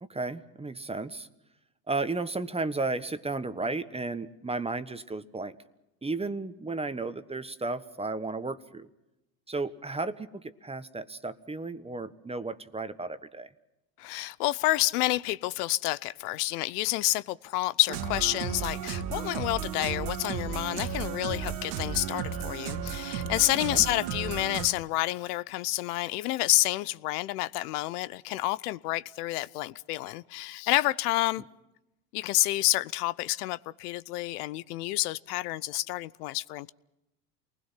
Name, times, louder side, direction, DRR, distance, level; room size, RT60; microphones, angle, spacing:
voice 1, 0.0-1.3 1.9-5.5 6.0-8.9 9.5-13.5 23.7-23.8, right 3 dB, 15° right, 1.3 m, -34 dB
voice 2, 14.0-31.4 32.1-36.7, left 18 dB, 75° left, 0.8 m, -29 dB
sound 1, 17.9-24.7, right 8 dB, 80° right, 1.8 m, -34 dB
29.0 x 20.0 x 5.8 m
hypercardioid pair, 80°, 46 cm